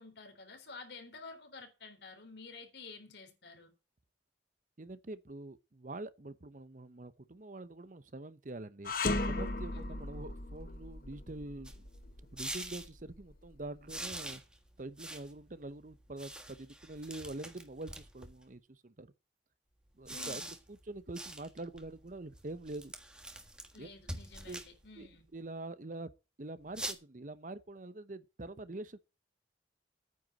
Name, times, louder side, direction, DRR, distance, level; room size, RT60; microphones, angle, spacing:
voice 1, 0.0-3.7 9.7-10.1 20.1-20.5 23.7-25.2, left 3 dB, 75° left, 3.6 m, -51 dB
voice 2, 4.8-8.9 9.2-11.7 12.3-14.4 14.8-19.1 20.0-22.9 23.8-23.9 24.5-24.6 25.0-26.1 26.4-29.0, right 2 dB, 45° right, 0.8 m, -45 dB
sound 1, 8.8-14.1, left 2 dB, 50° left, 1.3 m, -37 dB
sound 2, 11.6-12.9 13.9-18.4 19.9-25.3 26.7-26.9, right 1 dB, 5° right, 1.4 m, -46 dB
9.5 x 7.9 x 7.5 m
head